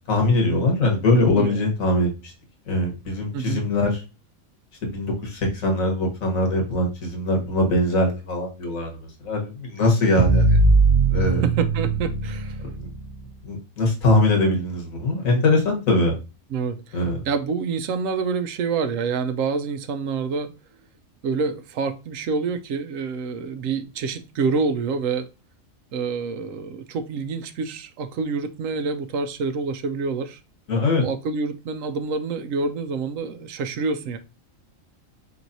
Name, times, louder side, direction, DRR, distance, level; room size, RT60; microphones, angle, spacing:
voice 1, 0.1-2.3 2.7-4.0 4.8-10.6 11.1-11.4 12.8-12.9 13.4-16.1 16.9-17.2 30.7-31.0, left 2 dB, 80° left, 1.7 m, -22 dB
voice 2, 3.3-3.6 11.2-12.6 16.5-20.5 21.2-25.3 25.9-30.4 31.0-34.2, right 5 dB, 75° right, 1.0 m, -27 dB
sound 1, 10.2-13.3, right 3 dB, 45° right, 0.5 m, -20 dB
4.5 x 3.9 x 2.6 m
omnidirectional pair, 1.4 m